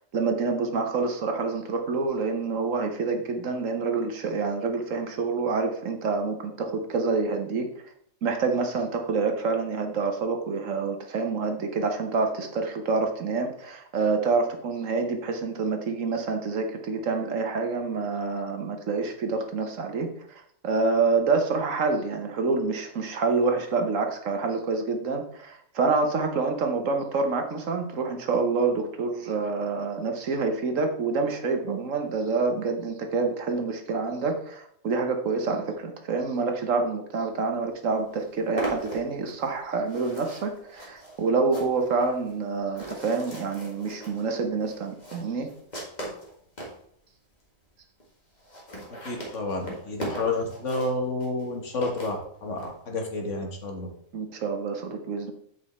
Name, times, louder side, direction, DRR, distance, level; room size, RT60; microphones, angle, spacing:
voice 1, 0.1-7.7 8.2-45.5 54.1-55.3, right 4 dB, 65° right, 5 dB, 1.4 m, -27 dB
sound 1, 37.6-37.7 37.9-46.8 47.4-47.5 47.7-47.8 48.0-48.1 48.3-52.7, right 1 dB, 30° left, 1.9 m, -39 dB
voice 2, 48.9-53.9, left 2 dB, 60° left, 2 dB, 1.7 m, -30 dB
8.2 x 5.1 x 4.2 m, 0.66 s
omnidirectional pair, 1.5 m